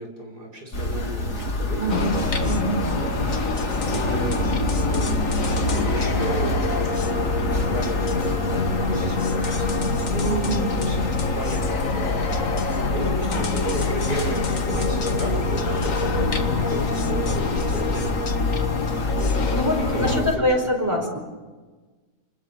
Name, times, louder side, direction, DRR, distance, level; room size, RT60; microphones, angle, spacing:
voice 1, 0.0-2.5 2.9-3.5 3.9-7.1 7.7-18.2 19.2-19.5 19.8-21.1, right 2 dB, 80° right, 1 dB, 6.8 m, -34 dB
sound 1, 0.7-20.4, left 1 dB, 75° left, 3.9 m, -27 dB
voice 2, 1.8-2.9 10.2-10.7 13.3-13.7 19.5-21.2, equal, 10° right, 3 dB, 4.7 m, -25 dB
sound 2, 1.9-20.2, left 4 dB, 55° left, 2.0 m, -26 dB
29.5 x 21.0 x 7.4 m, 1.3 s
omnidirectional pair, 1.7 m